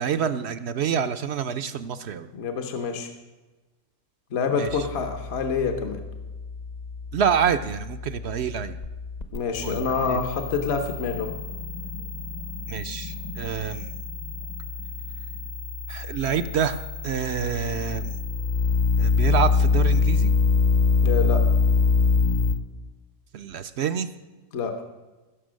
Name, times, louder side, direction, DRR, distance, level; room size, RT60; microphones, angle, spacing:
voice 1, 0.0-2.3 4.6-4.7 7.1-8.8 9.6-10.2 12.7-14.0 15.9-18.2 19.0-20.3 23.3-24.1, right 7 dB, 60° right, 11 dB, 0.7 m, -27 dB
voice 2, 2.3-3.1 4.3-6.0 9.3-11.3 21.0-21.4 24.5-24.7, left 5 dB, 55° left, 5 dB, 1.2 m, -27 dB
sound 1, 4.7-22.5, left 4 dB, 35° left, 0.8 m, -26 dB
16.0 x 6.8 x 6.3 m, 1.2 s
omnidirectional pair, 1.4 m